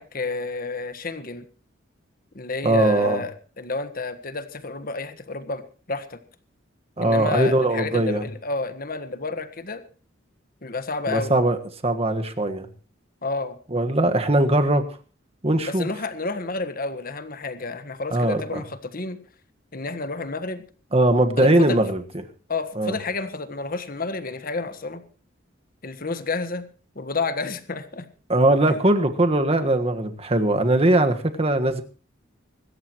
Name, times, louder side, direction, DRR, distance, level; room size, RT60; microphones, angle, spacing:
voice 1, 0.0-1.5 2.3-5.6 5.9-6.2 7.0-9.8 10.6-11.4 13.2-13.6 15.7-19.2 19.7-20.6 21.4-21.8 22.5-25.0 25.8-26.7 26.9-28.1 28.7-28.8, left 3 dB, 50° left, 11 dB, 1.5 m, -30 dB
voice 2, 2.6-3.2 7.0-8.3 11.1-12.7 13.7-14.9 15.4-15.9 18.1-18.6 20.9-22.0 22.8-23.0 28.3-31.8, right 1 dB, 30° right, 7 dB, 1.5 m, -20 dB
25.5 x 13.5 x 3.1 m, 0.38 s
head